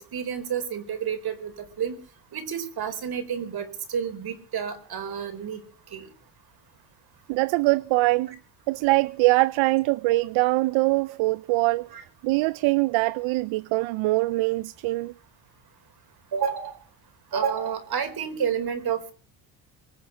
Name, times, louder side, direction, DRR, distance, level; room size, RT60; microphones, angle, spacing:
voice 1, 0.0-2.0 2.3-5.6 5.9-6.1 11.9-12.0 16.3-16.8 17.3-19.1, right 7 dB, 50° right, 4.6 m, -30 dB
voice 2, 7.3-8.4 8.7-11.9 12.2-15.1, right 22 dB, 70° right, 0.6 m, -23 dB
24.5 x 8.4 x 6.0 m
supercardioid pair, 90°, 48 cm